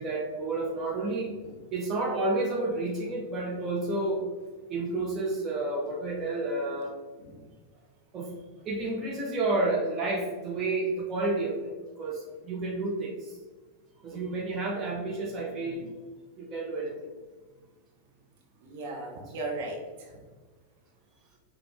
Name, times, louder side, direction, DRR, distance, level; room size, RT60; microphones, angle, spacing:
voice 1, 0.0-1.3 1.7-4.2 4.7-6.9 8.1-8.3 8.7-11.7 12.0-12.2 12.5-13.1 14.0-15.9 16.4-17.0, right 2 dB, 30° right, -2 dB, 0.7 m, -30 dB
voice 2, 18.6-20.2, right 2 dB, 50° right, 0 dB, 1.0 m, -37 dB
5.9 x 2.3 x 3.2 m, 1.4 s
figure-of-eight pair, 90°, 0 cm